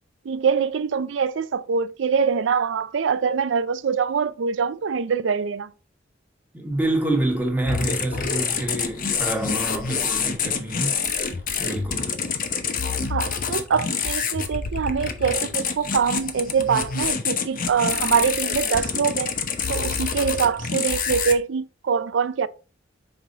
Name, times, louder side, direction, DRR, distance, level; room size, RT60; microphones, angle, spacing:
voice 1, 0.2-5.7 13.1-19.3 19.7-22.5, right 6 dB, 90° right, 0.4 m, -24 dB
voice 2, 6.5-10.9 11.6-12.1, right 1 dB, 10° right, 1.4 m, -27 dB
sound 1, 6.7-11.8, left 1 dB, 75° left, 2.9 m, -44 dB
sound 2, 7.6-21.3, left 6 dB, 50° left, 0.8 m, -27 dB
5.3 x 4.7 x 3.8 m
head